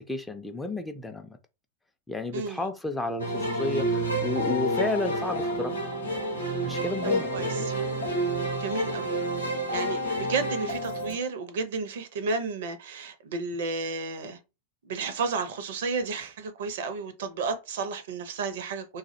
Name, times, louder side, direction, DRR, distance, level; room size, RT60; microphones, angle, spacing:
voice 1, 0.0-1.4 2.1-5.9 6.6-7.7, left 2 dB, 5° left, 0.3 m, -32 dB
sound 1, 3.2-11.2, right 1 dB, 80° left, 0.7 m, -29 dB
voice 2, 7.3-7.7 8.6-9.1 9.5-14.4 14.8-19.0, right 4 dB, 55° right, 0.4 m, -32 dB
2.3 x 2.0 x 2.6 m
figure-of-eight pair, 90°, 0 cm